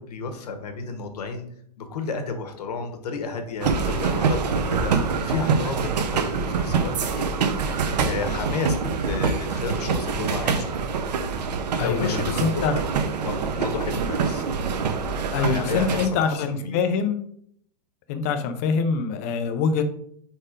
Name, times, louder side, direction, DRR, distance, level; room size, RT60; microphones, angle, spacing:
voice 1, 0.0-1.5 1.8-10.7 11.7-12.8 13.2-14.4 15.3-16.8, left 4 dB, 70° left, 6 dB, 1.4 m, -32 dB
sound 1, 3.6-16.1, right 5 dB, 90° right, 1.0 m, -25 dB
voice 2, 11.8-12.8 15.3-17.2 18.1-19.8, left 5 dB, 20° left, 7 dB, 0.4 m, -24 dB
4.9 x 4.4 x 5.0 m, 0.67 s
supercardioid pair, 180°, 21 cm